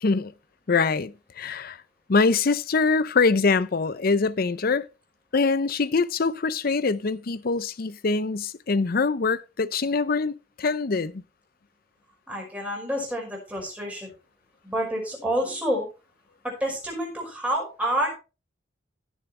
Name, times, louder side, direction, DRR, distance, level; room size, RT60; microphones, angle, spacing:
voice 1, 0.0-0.3 0.7-1.8 2.1-4.9 5.3-11.2, left 4 dB, 50° left, 0.6 m, -24 dB
voice 2, 12.3-14.1 14.6-15.9 16.4-18.2, right 1 dB, 5° right, 5.5 m, -28 dB
16.5 x 7.3 x 3.3 m
head